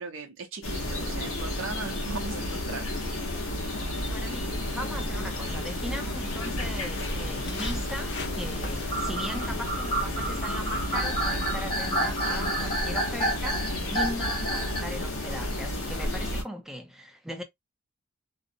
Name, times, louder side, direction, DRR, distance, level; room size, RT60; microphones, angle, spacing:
voice 1, 0.0-2.9, right 4 dB, 65° right, 0.6 m, -38 dB
sound 1, 0.6-16.4, left 1 dB, 75° left, 1.0 m, -32 dB
voice 2, 4.1-13.6 13.9-17.4, equal, ahead, 0.4 m, -39 dB
sound 2, 4.2-6.3 6.9-8.0 8.7-14.9, right 1 dB, 25° left, 0.9 m, -31 dB
Walk footsteps, 4.6-11.6, left 3 dB, 55° left, 0.5 m, -43 dB
2.6 x 2.0 x 2.6 m
head